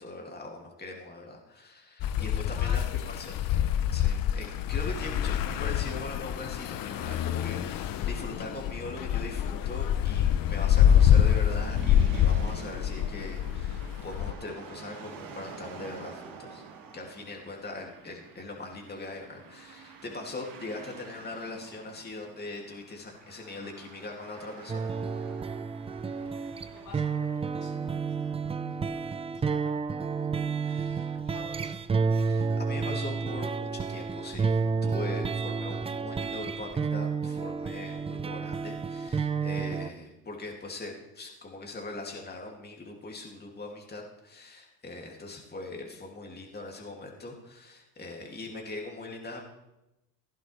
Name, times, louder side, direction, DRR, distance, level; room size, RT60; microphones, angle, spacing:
voice 1, 0.0-3.5 3.9-16.6 16.9-24.9 29.4-29.8 30.2-31.2 32.2-49.4, left 2 dB, 20° left, 0 dB, 2.6 m, -41 dB
sound 1, 2.0-14.3, left 10 dB, 45° left, 0.7 m, -26 dB
voice 2, 2.5-3.6 26.7-29.4 31.2-31.8, left 4 dB, 85° left, -3 dB, 4.0 m, -49 dB
sound 2, 10.4-28.8, right 4 dB, 45° right, 2.2 m, -48 dB
sound 3, 24.7-39.9, right 5 dB, 15° right, 0.4 m, -31 dB
16.5 x 11.0 x 3.3 m, 0.93 s
supercardioid pair, 85°, 47 cm